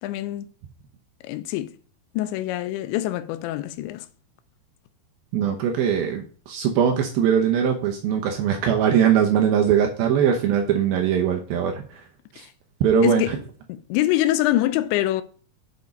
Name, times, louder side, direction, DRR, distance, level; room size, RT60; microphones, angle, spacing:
voice 1, 0.0-0.5 1.2-1.8 2.1-4.1 12.4-12.5 13.0-13.3 13.7-15.2, left 14 dB, 85° left, 2.9 m, -24 dB
voice 2, 5.3-12.0 12.3-12.4 12.8-13.3, right 8 dB, 75° right, 2.3 m, -21 dB
8.2 x 5.2 x 5.2 m
omnidirectional pair, 5.2 m